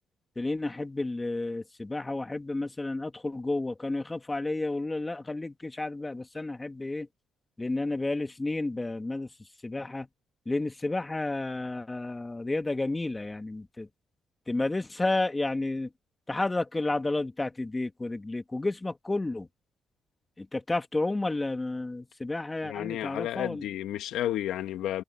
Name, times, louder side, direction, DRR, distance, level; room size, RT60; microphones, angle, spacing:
voice 1, 0.4-7.1 7.6-9.3 9.6-10.1 10.5-13.9 14.5-15.9 16.3-19.5 20.4-23.6, left 2 dB, 20° left, 2.0 m, -31 dB
voice 2, 22.6-25.0, left 12 dB, 85° left, 1.9 m, -32 dB
cardioid pair, 90°, 0 cm